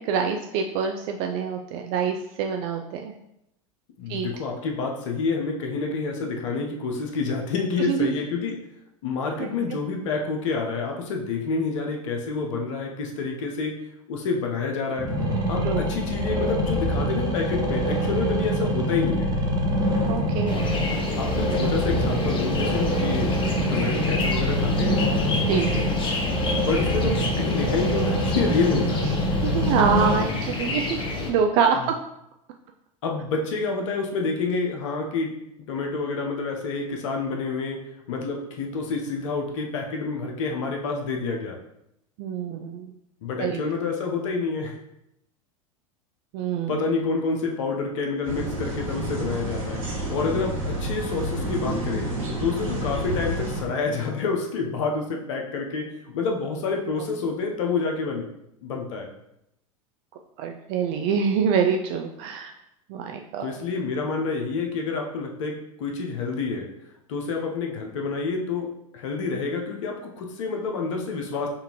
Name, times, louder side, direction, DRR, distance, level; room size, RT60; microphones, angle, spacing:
voice 1, 0.0-3.1 4.1-4.3 7.8-8.2 9.4-9.5 15.6-15.9 20.0-20.7 21.4-21.7 25.5-25.9 29.4-31.0 31.3-32.0 42.2-42.9 43.4-43.6 46.3-46.8 60.4-62.5 62.9-63.6, right 6 dB, 50° right, 4 dB, 0.4 m, -26 dB
voice 2, 4.0-8.6 9.0-13.8 14.1-15.1 15.5-19.3 21.2-23.3 23.7-25.0 26.5-29.1 31.7-31.9 33.0-35.4 35.7-37.8 38.1-41.6 43.2-44.8 46.7-49.8 50.1-52.1 52.4-58.3 58.6-59.1 63.4-66.7 67.1-71.5, left 4 dB, 60° left, 2 dB, 0.7 m, -28 dB
sound 1, 15.0-30.2, equal, 20° right, 1.0 m, -25 dB
sound 2, 20.5-31.3, left 3 dB, 30° left, 0.8 m, -29 dB
sound 3, 48.2-53.6, right 1 dB, 75° right, 1.3 m, -29 dB
5.2 x 2.5 x 2.9 m, 0.82 s
hypercardioid pair, 90°, 18 cm